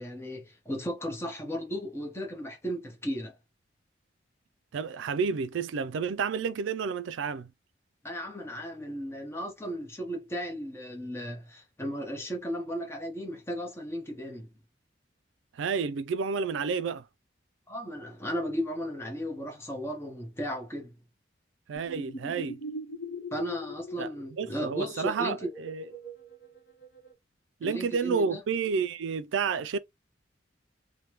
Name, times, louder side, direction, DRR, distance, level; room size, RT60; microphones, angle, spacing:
voice 1, 0.0-3.4 8.0-14.5 17.7-20.9 23.3-25.5 27.6-28.4, equal, 15° left, 0.8 m, -35 dB
voice 2, 4.7-7.5 15.5-17.0 21.7-22.6 24.0-25.9 27.6-29.8, right 5 dB, 85° right, 0.4 m, -30 dB
sound 1, 21.7-27.1, left 1 dB, 55° left, 0.8 m, -41 dB
3.3 x 2.2 x 2.9 m
head